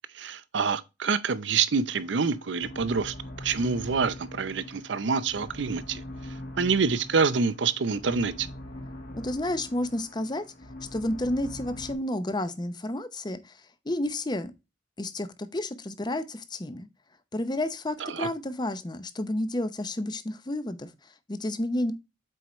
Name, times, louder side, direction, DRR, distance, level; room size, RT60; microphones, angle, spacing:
voice 1, 0.1-6.0 6.6-8.5 18.0-18.3, right 5 dB, 75° right, 0.6 m, -27 dB
sound 1, 1.9-11.9, left 1 dB, 50° left, 1.6 m, -42 dB
voice 2, 9.1-10.5 10.9-13.6 13.8-14.5 15.0-16.9 17.3-21.9, left 1 dB, 25° left, 0.7 m, -31 dB
7.8 x 4.6 x 3.0 m
head